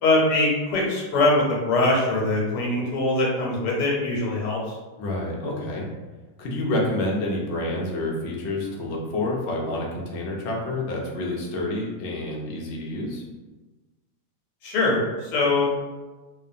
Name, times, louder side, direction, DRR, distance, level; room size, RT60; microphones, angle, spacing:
voice 1, 0.0-4.8 14.6-15.7, left 2 dB, 90° left, -3 dB, 1.4 m, -22 dB
voice 2, 5.0-5.9 6.4-13.2, left 1 dB, 70° left, -2 dB, 0.6 m, -28 dB
2.8 x 2.1 x 2.5 m, 1.2 s
omnidirectional pair, 1.8 m